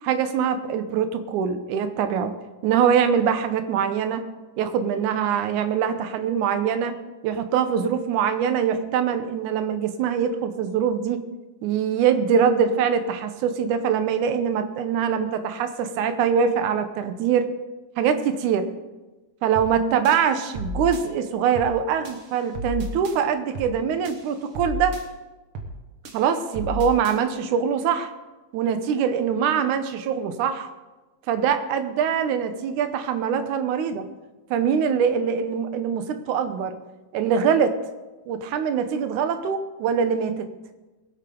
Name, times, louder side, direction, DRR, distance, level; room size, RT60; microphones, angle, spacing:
voice 1, 0.0-2.3 2.6-4.2 4.6-11.2 11.6-17.5 18.0-18.7 19.4-25.0 26.1-28.1 28.5-30.7 31.3-34.1 34.5-36.8 37.1-37.7 38.3-40.5, right 7 dB, 75° right, 9 dB, 2.3 m, -23 dB
sound 1, 19.6-19.8 20.1-21.0 21.6-21.8 22.1-23.2 23.6-23.8 24.1-25.0 25.6-25.8 26.1-27.2, left 1 dB, 55° right, 2.0 m, -33 dB
20.5 x 8.4 x 3.8 m, 1.2 s
omnidirectional pair, 3.6 m